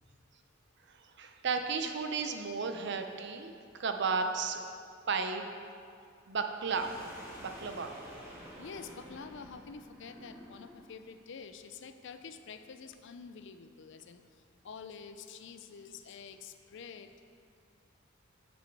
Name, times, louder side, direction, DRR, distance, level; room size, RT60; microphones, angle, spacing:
voice 1, 0.9-3.5 3.8-4.6 5.1-5.5 6.3-6.9 7.4-8.0, right 5 dB, 60° right, 6 dB, 0.6 m, -33 dB
sound 1, 6.6-10.9, equal, 10° right, 1.5 m, -50 dB
voice 2, 8.6-14.2 14.6-17.1, left 5 dB, 60° left, 9 dB, 0.5 m, -47 dB
9.5 x 6.2 x 4.6 m, 2.3 s
head